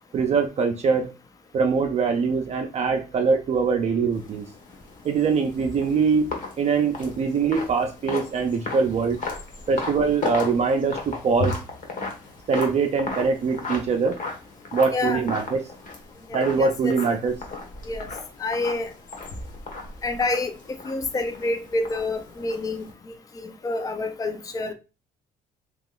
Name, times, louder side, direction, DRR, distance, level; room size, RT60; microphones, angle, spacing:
voice 1, 0.1-1.1 1.5-4.5 5.0-6.3 6.6-9.2 9.7-11.6 12.5-14.2 14.7-15.6 16.3-17.3, right 5 dB, 40° right, 0.5 m, -23 dB
Steps Snow Bridge, 4.1-22.9, left 3 dB, 50° left, 1.2 m, -35 dB
voice 2, 14.9-15.2 16.3-16.9 17.9-18.1 18.4-18.9 20.0-20.6 20.8-24.7, left 2 dB, 20° left, 0.5 m, -28 dB
3.0 x 2.9 x 3.8 m
cardioid pair, 110°, 17 cm